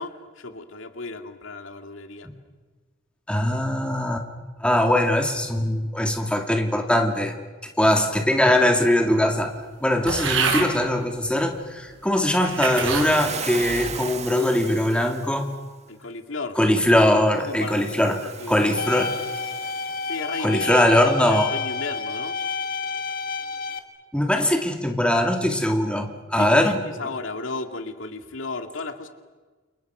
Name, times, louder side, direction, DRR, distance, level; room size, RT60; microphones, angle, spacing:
voice 1, 0.0-2.3 15.9-16.6 17.4-18.5 20.1-20.7 21.2-22.4 26.4-29.1, left 3 dB, 80° left, 6 dB, 2.2 m, -34 dB
voice 2, 3.3-4.2 4.6-7.3 7.8-9.5 9.8-15.5 16.6-18.2 18.5-19.1 20.4-21.5 24.1-26.8, left 1 dB, 5° left, 3 dB, 2.8 m, -21 dB
sound 1, 10.1-10.7 11.5-11.6 12.3-13.1 13.7-14.1, right 5 dB, 75° right, 4.9 m, -26 dB
Waves surf, 12.4-15.6 17.4-20.4, right 6 dB, 35° right, 1.7 m, -37 dB
sound 2, 18.8-23.8, left 4 dB, 50° left, 2.2 m, -30 dB
29.5 x 29.0 x 6.2 m, 1.3 s
head